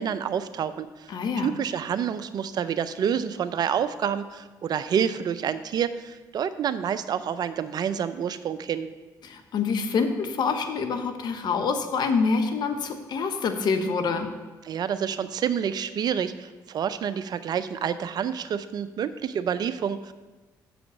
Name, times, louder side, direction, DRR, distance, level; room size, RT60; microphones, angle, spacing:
voice 1, 0.0-8.9 14.6-20.1, right 8 dB, 60° right, 13 dB, 0.5 m, -28 dB
voice 2, 1.1-1.5 9.2-14.3, left 5 dB, 65° left, 7 dB, 1.0 m, -26 dB
7.0 x 5.1 x 7.1 m, 1.2 s
supercardioid pair, 65°, 8 cm